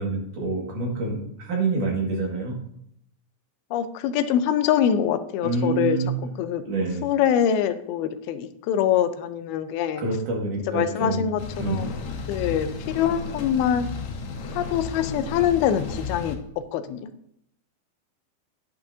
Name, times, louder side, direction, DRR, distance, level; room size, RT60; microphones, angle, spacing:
voice 1, 0.0-2.6 5.4-6.1 6.7-7.0 10.0-11.3 11.6-11.9, right 3 dB, 60° right, -1 dB, 3.4 m, -27 dB
voice 2, 3.7-6.0 6.4-6.6 7.0-10.0 10.7-11.4 11.7-11.9 12.3-13.9 14.6-17.1, left 9 dB, 90° left, 11 dB, 2.6 m, -24 dB
sound 1, 11.4-16.4, left 4 dB, 65° left, 1.9 m, -33 dB
10.5 x 9.8 x 2.8 m, 0.73 s
omnidirectional pair, 4.3 m